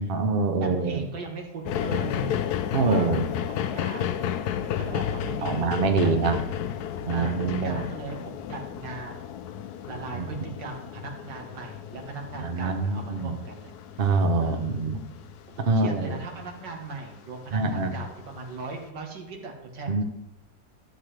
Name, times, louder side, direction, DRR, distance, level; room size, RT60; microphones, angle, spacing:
voice 1, 0.0-1.1 2.7-3.3 5.4-6.4 7.0-7.9 10.1-10.3 12.4-13.4 14.0-15.0 15.7-16.2 17.5-17.9 19.9-20.0, right 3 dB, 40° right, 6 dB, 0.9 m, -25 dB
voice 2, 0.6-2.5 2.8-3.2 3.5-4.2 4.8-6.1 7.1-9.3 9.9-14.1 14.4-14.8 15.5-20.0, right 3 dB, 80° right, 1 dB, 2.1 m, -38 dB
sound 1, 1.7-17.2 17.8-17.9, left 9 dB, 70° left, 1.1 m, -33 dB
13.0 x 7.7 x 3.3 m, 0.92 s
omnidirectional pair, 1.9 m